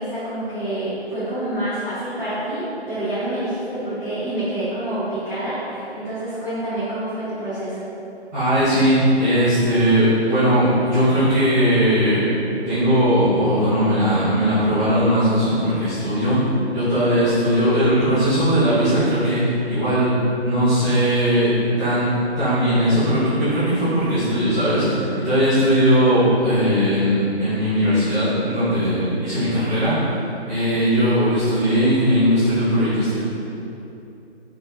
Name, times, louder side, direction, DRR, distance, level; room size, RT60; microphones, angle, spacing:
voice 1, 0.0-7.8, right 1 dB, 10° left, -21 dB, 1.0 m, -27 dB
voice 2, 8.3-12.2 12.7-16.4 16.7-20.1 20.4-21.5 21.8-22.1 22.4-29.9 30.5-33.1, equal, 15° right, -15 dB, 1.2 m, -19 dB
4.0 x 2.8 x 2.7 m, 2.9 s
figure-of-eight pair, 155°, 33 cm